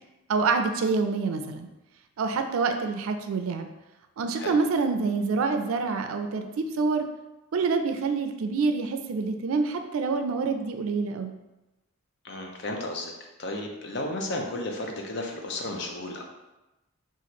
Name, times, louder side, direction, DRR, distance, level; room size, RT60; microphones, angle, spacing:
voice 1, 0.3-1.7 2.2-3.7 4.2-7.0 7.5-11.3, right 4 dB, 85° right, 7 dB, 0.4 m, -26 dB
voice 2, 12.2-13.1 13.4-16.2, left 2 dB, 55° left, 2 dB, 0.6 m, -33 dB
3.0 x 2.5 x 4.1 m, 1.0 s
head